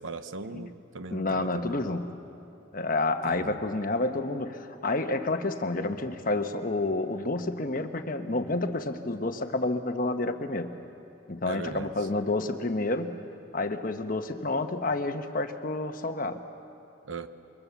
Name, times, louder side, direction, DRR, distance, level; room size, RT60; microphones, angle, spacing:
voice 1, 0.0-1.8 3.2-3.6 11.5-11.9 17.1-17.3, right 4 dB, 80° right, 10 dB, 1.0 m, -39 dB
voice 2, 1.1-2.1 2.7-10.7 11.3-13.1 13.5-16.4, left 2 dB, 45° left, 7 dB, 1.1 m, -29 dB
25.5 x 23.5 x 7.1 m, 3.0 s
head